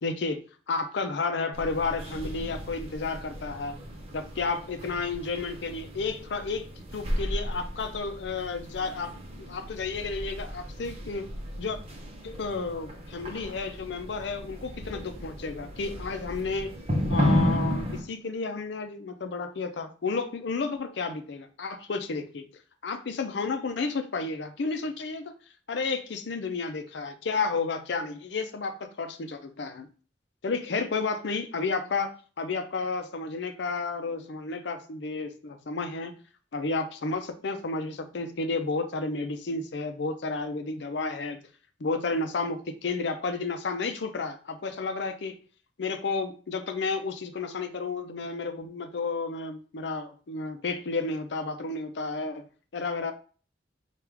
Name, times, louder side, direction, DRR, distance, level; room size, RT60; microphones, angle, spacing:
voice 1, 0.0-3.8 4.1-11.8 12.2-16.7 17.1-22.5 22.8-25.3 25.7-29.9 30.4-36.1 36.5-41.4 41.8-45.4 45.8-53.1, left 4 dB, 75° left, 8 dB, 0.5 m, -32 dB
sound 1, 1.5-18.0, equal, 35° right, 0.8 m, -33 dB
3.5 x 2.4 x 4.5 m, 0.40 s
head